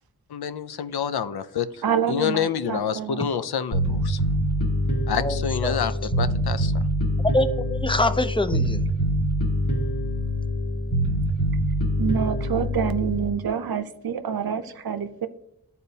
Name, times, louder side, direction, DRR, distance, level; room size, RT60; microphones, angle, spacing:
voice 1, 0.3-1.7 2.1-4.2 5.1-5.9 6.2-6.7, left 8 dB, 80° left, 13 dB, 0.5 m, -27 dB
voice 2, 1.8-3.3 12.0-15.3, right 7 dB, 70° right, 10 dB, 0.6 m, -27 dB
Bass guitar, 3.7-13.3, equal, 50° left, 1.6 m, -25 dB
voice 3, 5.2-5.8 7.3-8.8, left 1 dB, 15° left, 9 dB, 0.4 m, -25 dB
12.0 x 4.1 x 2.7 m, 0.80 s
wide cardioid pair, 80°, 38 cm